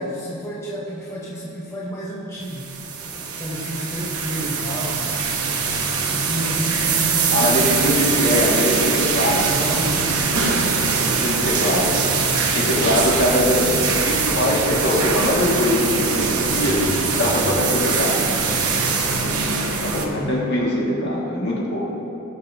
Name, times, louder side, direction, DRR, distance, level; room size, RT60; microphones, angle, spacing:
voice 1, 0.0-2.8 3.3-8.3 9.4-10.1 11.3-13.2 19.9-20.4, equal, 15° left, -6 dB, 1.0 m, -31 dB
sound 1, 2.4-20.1, right 4 dB, 85° right, 1.0 m, -22 dB
voice 2, 7.3-9.5 11.1-11.9 12.5-18.2 19.8-21.9, left 1 dB, 50° left, -4 dB, 2.0 m, -22 dB
18.5 x 6.2 x 2.8 m, 2.9 s
head